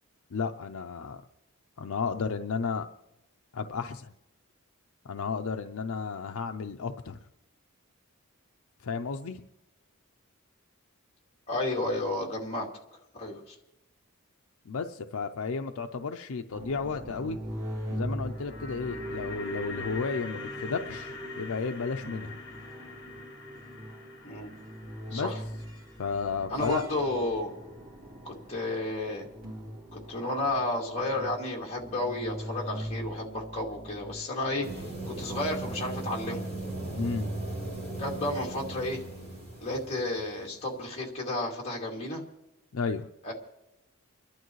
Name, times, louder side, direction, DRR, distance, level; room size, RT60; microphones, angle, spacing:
voice 1, 0.3-1.2 1.8-2.9 3.5-4.1 5.0-7.2 8.8-9.4 14.7-17.4 17.9-22.4 25.1-25.3 26.0-26.8 37.0-37.3 42.7-43.1, left 5 dB, 75° left, 6 dB, 0.5 m, -33 dB
voice 2, 11.5-12.7 13.2-13.5 24.2-24.5 25.1-25.4 26.5-27.5 28.2-29.2 29.9-34.7 35.1-36.4 38.0-39.0 39.6-42.2 43.2-43.3, left 1 dB, 30° left, -1 dB, 2.3 m, -32 dB
sound 1, 16.5-35.8, equal, 85° right, 2.1 m, -42 dB
sound 2, 18.2-28.3 28.6-28.7, left 1 dB, 50° left, 1.6 m, -43 dB
sound 3, 34.6-40.6, right 2 dB, 30° right, 6.2 m, -37 dB
30.0 x 11.5 x 3.1 m, 0.95 s
head